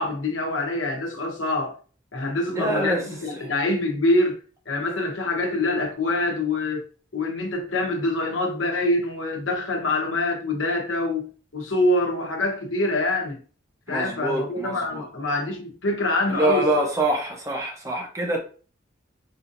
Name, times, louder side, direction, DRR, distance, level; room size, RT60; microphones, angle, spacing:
voice 1, 0.0-1.8 2.1-4.4 4.7-6.8 7.1-13.4 13.9-16.9, left 2 dB, 85° left, 1.0 m, -25 dB
voice 2, 2.5-3.0 13.9-15.1 16.3-18.4, right 1 dB, 15° right, 0.8 m, -25 dB
4.3 x 2.6 x 2.6 m
head